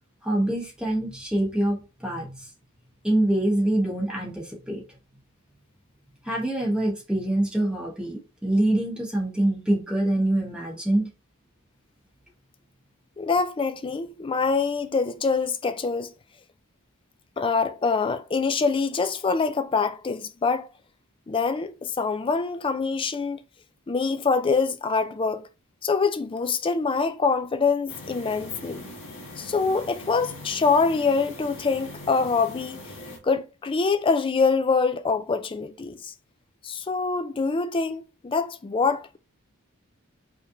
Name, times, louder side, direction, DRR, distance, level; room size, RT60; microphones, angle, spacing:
voice 1, 0.2-2.5 3.0-4.8 6.2-11.1, right 1 dB, 5° right, 1.0 m, -25 dB
voice 2, 13.2-16.1 17.4-20.7 21.3-23.4 23.9-25.5 25.8-28.9 29.4-32.8 33.2-36.1 36.6-39.2, left 4 dB, 25° left, 0.4 m, -25 dB
sound 1, 27.9-33.2, left 1 dB, 60° left, 1.5 m, -41 dB
4.8 x 3.3 x 2.6 m
head